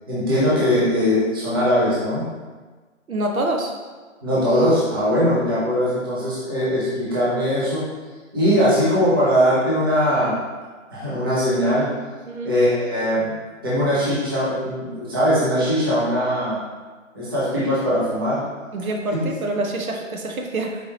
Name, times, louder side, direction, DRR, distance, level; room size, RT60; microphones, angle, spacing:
voice 1, 0.1-2.2 4.2-7.9 8.3-10.4 10.9-11.9 12.4-13.3 13.6-16.6 17.1-18.4 19.1-19.2, equal, 15° right, -9 dB, 0.6 m, -20 dB
voice 2, 3.1-3.7 12.3-12.5 18.7-20.8, right 2 dB, 85° right, 1 dB, 0.8 m, -26 dB
4.5 x 3.1 x 2.8 m, 1.3 s
hypercardioid pair, 155°, 41 cm